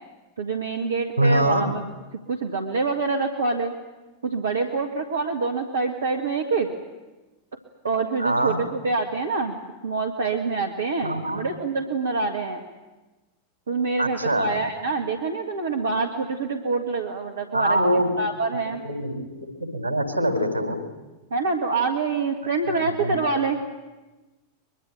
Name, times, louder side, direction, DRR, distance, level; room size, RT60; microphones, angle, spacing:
voice 1, 0.4-1.8 2.3-3.7 4.2-6.7 7.8-9.6 9.8-12.6 13.7-18.8 21.3-23.6, right 4 dB, 70° right, 4 dB, 1.9 m, -26 dB
voice 2, 1.2-1.6 8.2-8.6 11.0-11.4 14.0-14.5 17.5-18.1 18.8-20.8 22.7-23.2, right 1 dB, 90° left, 5 dB, 3.8 m, -24 dB
23.5 x 22.5 x 9.1 m, 1.2 s
figure-of-eight pair, 90°, 0 cm